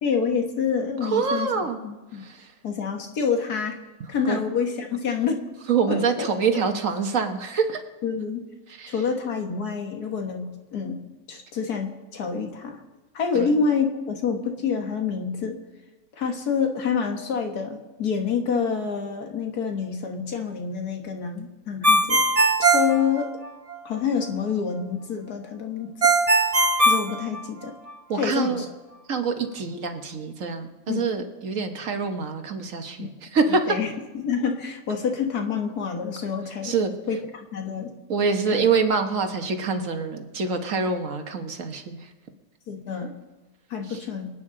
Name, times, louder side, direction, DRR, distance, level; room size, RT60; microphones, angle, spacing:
voice 1, 0.0-1.5 1.8-2.2 2.6-3.8 4.1-5.4 5.9-6.3 8.0-8.5 8.9-11.0 11.3-12.8 13.1-15.6 16.1-22.2 22.6-23.3 23.9-26.0 26.8-27.7 28.2-28.7 30.9-31.0 33.0-33.1 33.7-33.9 34.1-36.7 37.1-37.9 38.5-38.7 42.7-43.1 43.7-44.3, left 6 dB, 80° left, 3 dB, 1.9 m, -27 dB
voice 2, 1.0-1.8 2.1-2.5 4.2-4.4 5.7-7.8 8.7-8.9 13.3-13.5 28.1-28.6 29.1-33.8 36.6-36.9 38.1-42.1 43.9-44.0, right 5 dB, 60° right, 6 dB, 1.5 m, -25 dB
Ringtone, 21.8-23.8 26.0-27.9, right 2 dB, 25° right, 1.0 m, -20 dB
26.0 x 9.4 x 3.8 m, 1.2 s
omnidirectional pair, 1.6 m